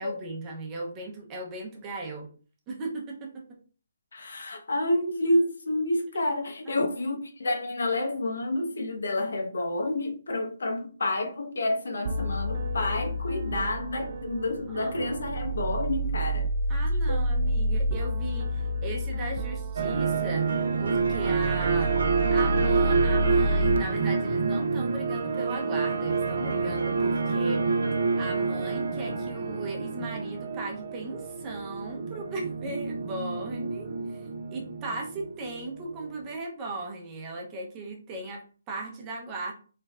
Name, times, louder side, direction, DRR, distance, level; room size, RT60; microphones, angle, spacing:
voice 1, 0.0-2.3 2.7-3.4 6.7-6.9 14.7-15.0 16.7-22.0 22.3-27.6 28.2-39.5, right 2 dB, 15° right, 0.9 m, -37 dB
voice 2, 4.1-16.5 17.1-17.2 26.4-26.8, left 1 dB, 70° left, 1.1 m, -29 dB
sound 1, 12.1-23.8, equal, 45° right, 0.4 m, -29 dB
sound 2, 19.8-36.1, right 4 dB, 70° right, 1.1 m, -28 dB
4.5 x 3.7 x 2.5 m
hypercardioid pair, 170°, 0 cm